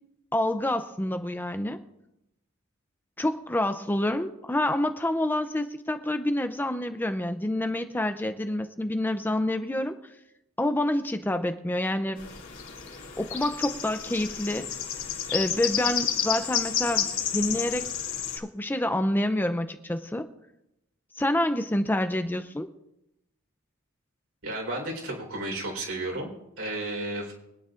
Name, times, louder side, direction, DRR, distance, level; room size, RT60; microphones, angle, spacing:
voice 1, 0.3-1.8 3.2-10.0 10.6-12.3 13.2-14.7 15.3-17.9 18.3-20.3 21.1-22.7, left 1 dB, 10° left, 8 dB, 0.5 m, -27 dB
sound 1, 12.2-18.4, left 8 dB, 65° left, 3.2 m, -31 dB
voice 2, 24.4-27.3, right 1 dB, 70° right, 0 dB, 4.2 m, -33 dB
24.5 x 9.8 x 2.5 m, 0.88 s
head